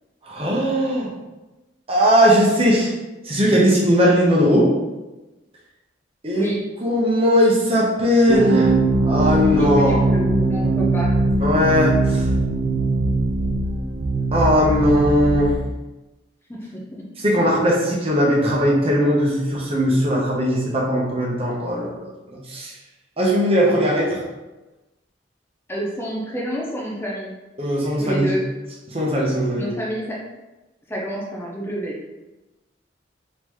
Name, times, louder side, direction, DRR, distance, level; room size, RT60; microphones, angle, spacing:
voice 1, 0.3-1.1 1.9-2.9 3.2-4.7 6.2-6.5 6.8-8.7 9.1-10.0 11.4-12.2 14.3-15.5 17.2-22.1 22.5-22.7 23.2-24.2 27.6-28.3 28.9-29.7, equal, 30° right, -3 dB, 1.0 m, -18 dB
voice 2, 6.3-6.6 9.6-11.2 16.5-17.1 25.7-27.3 28.0-28.5 29.6-30.2 30.9-32.0, equal, 15° left, -4 dB, 0.7 m, -28 dB
sound 1, 8.3-15.6, right 2 dB, 75° right, 0.7 m, -20 dB
3.9 x 3.8 x 3.1 m, 1.1 s
head